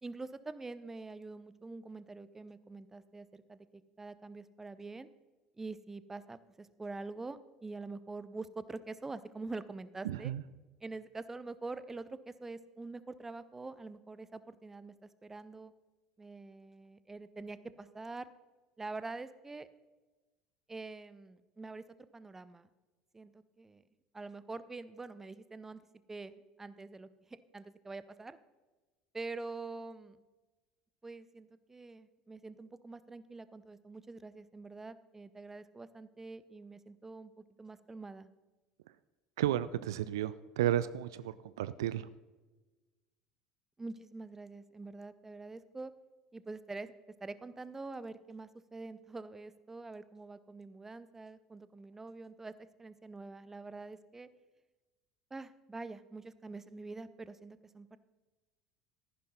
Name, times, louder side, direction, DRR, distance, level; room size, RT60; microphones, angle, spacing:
voice 1, 0.0-5.1 5.6-10.3 10.8-15.7 16.2-18.3 18.8-19.7 20.7-21.8 22.1-22.7 23.1-23.8 24.1-25.8 26.1-28.4 29.1-30.2 31.0-37.3 37.6-38.3 43.8-45.9 46.3-46.9 47.2-52.5 52.8-54.3 55.3-58.0, right 3 dB, 15° right, 15 dB, 0.7 m, -45 dB
voice 2, 10.0-10.4 39.4-42.1, right 12 dB, 65° right, 16 dB, 0.4 m, -33 dB
14.5 x 11.0 x 4.0 m, 1.2 s
figure-of-eight pair, 65°, 2 cm